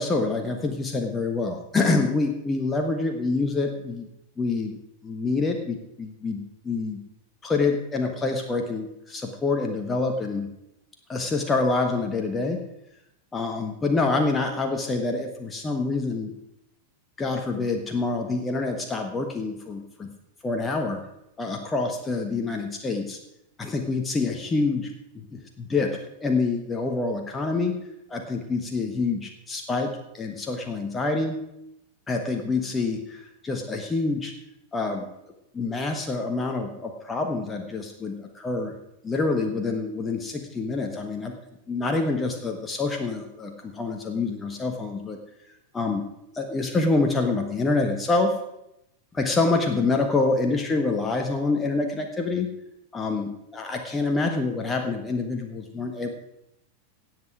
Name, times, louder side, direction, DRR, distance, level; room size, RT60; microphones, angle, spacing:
voice 1, 0.0-4.1 4.4-4.8 5.0-7.0 7.4-10.5 11.1-12.6 13.3-16.3 17.2-20.1 20.4-21.0 21.4-23.2 23.6-27.7 28.1-31.4 32.1-34.3 34.7-35.1 35.5-38.7 39.0-41.3 41.7-45.2 45.7-46.1 46.3-48.4 49.1-52.5 52.9-56.1, left 3 dB, 15° left, 4 dB, 1.3 m, -26 dB
17.0 x 8.0 x 4.9 m, 0.85 s
figure-of-eight pair, 90°, 0 cm